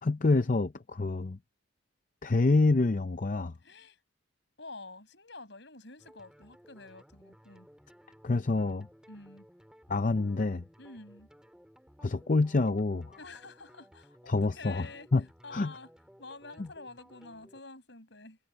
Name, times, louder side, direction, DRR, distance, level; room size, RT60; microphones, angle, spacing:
voice 1, 0.0-1.4 2.2-3.5 8.2-8.9 9.9-10.6 12.0-13.2 14.3-15.2 15.5-15.7 16.6-16.7, left 3 dB, 40° left, 0.5 m, -27 dB
voice 2, 3.6-4.0 4.6-7.7 9.1-9.5 10.8-11.3 13.2-15.1 15.4-15.9 16.2-18.4, left 3 dB, 60° left, 8.0 m, -48 dB
sound 1, 6.0-17.6, equal, 5° right, 6.2 m, -58 dB
head